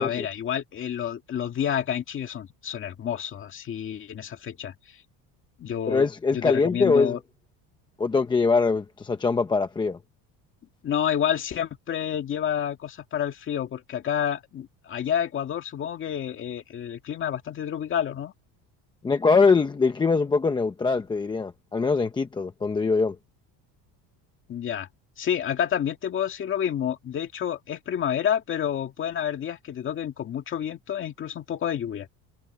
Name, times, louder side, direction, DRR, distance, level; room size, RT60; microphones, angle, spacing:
voice 1, 0.0-4.7 5.6-7.2 10.8-18.3 24.5-24.9 25.2-32.1, left 9 dB, 30° left, 2.0 m, -29 dB
voice 2, 5.9-7.2 8.0-10.0 19.0-23.2, left 4 dB, 10° left, 0.6 m, -23 dB
cardioid pair, 170°, 41 cm